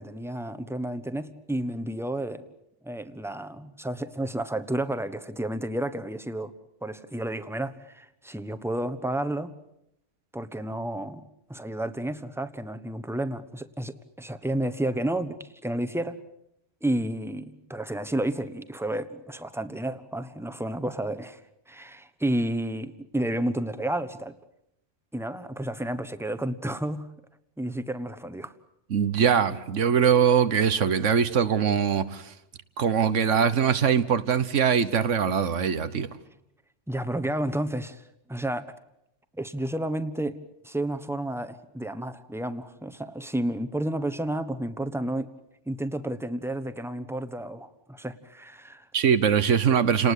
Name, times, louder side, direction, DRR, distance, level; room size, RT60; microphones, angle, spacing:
voice 1, 0.0-2.4 2.8-6.5 6.8-9.5 10.3-11.2 11.5-16.2 16.8-21.4 21.7-24.3 25.1-27.1 27.6-28.5 36.9-38.0 38.3-38.7 39.4-40.4 40.6-45.3 45.7-48.9, right 1 dB, ahead, 1.1 m, -31 dB
voice 2, 28.9-32.3 32.8-36.1 48.9-50.1, right 7 dB, 85° right, 1.5 m, -22 dB
30.0 x 19.5 x 8.3 m
omnidirectional pair, 1.2 m